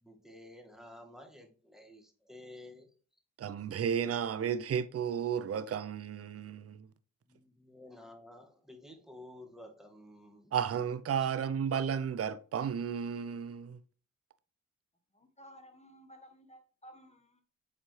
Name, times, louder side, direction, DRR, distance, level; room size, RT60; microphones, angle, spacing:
voice 1, 0.0-2.9 7.3-10.5, left 1 dB, ahead, 2.0 m, -52 dB
voice 2, 3.4-6.9 10.5-13.8, right 8 dB, 45° right, 0.6 m, -33 dB
voice 3, 15.1-17.4, equal, 20° left, 1.7 m, -55 dB
7.6 x 4.1 x 3.3 m
supercardioid pair, 50°, 35 cm